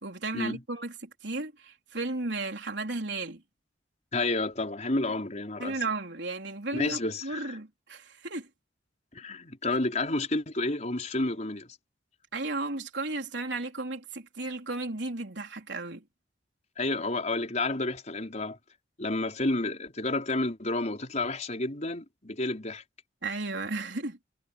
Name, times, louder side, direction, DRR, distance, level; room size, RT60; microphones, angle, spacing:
voice 1, 0.0-3.4 5.6-8.5 12.3-16.0 23.2-24.2, right 3 dB, 75° right, 3.9 m, -34 dB
voice 2, 4.1-5.8 6.7-7.6 9.1-11.7 16.8-18.6 19.0-22.8, left 2 dB, 40° left, 4.8 m, -30 dB
head